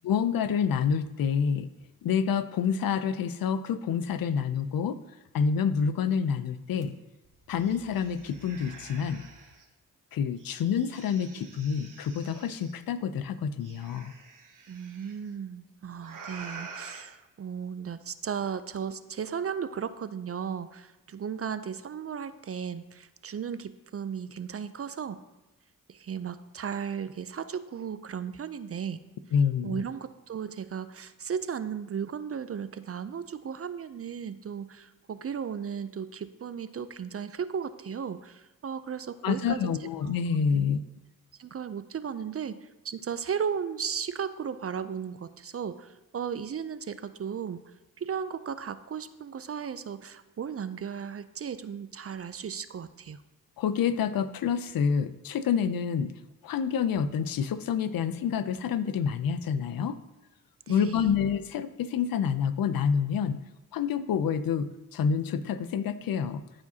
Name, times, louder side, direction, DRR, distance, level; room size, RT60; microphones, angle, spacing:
voice 1, 0.0-1.7 2.0-5.0 5.3-6.9 7.5-9.2 10.1-14.1 29.3-29.8 39.2-40.8 53.6-56.1 56.4-60.0 60.7-63.4 63.7-66.4, left 7 dB, 80° left, 13 dB, 0.5 m, -28 dB
sound 1, 6.8-6.9 7.2-9.6 10.4-12.7 13.6-15.1 16.0-17.0, right 4 dB, 65° right, 1.2 m, -47 dB
voice 2, 14.7-25.2 25.9-29.0 29.6-39.7 40.0-40.7 41.4-47.6 48.0-53.2 60.7-61.2, right 7 dB, 45° right, 13 dB, 0.5 m, -35 dB
13.5 x 4.9 x 2.8 m, 1.0 s
cardioid pair, 55°, 34 cm